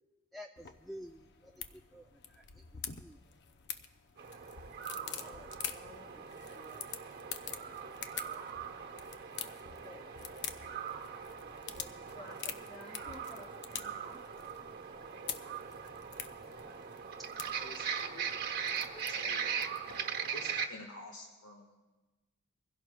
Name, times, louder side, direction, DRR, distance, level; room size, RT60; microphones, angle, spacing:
voice 1, 0.3-3.2 18.9-19.0, equal, ahead, 1 dB, 0.4 m, -51 dB
sound 1, 0.6-20.0, left 8 dB, 55° left, 0.6 m, -47 dB
sound 2, 4.2-20.7, right 7 dB, 45° right, 1.0 m, -40 dB
voice 2, 4.9-6.9 7.5-8.4 9.7-10.4 11.7-14.2, left 1 dB, 35° left, -6 dB, 2.7 m, -55 dB
voice 3, 17.6-21.7, left 2 dB, 80° left, 1 dB, 1.3 m, -51 dB
24.0 x 16.0 x 2.2 m, 1.2 s
head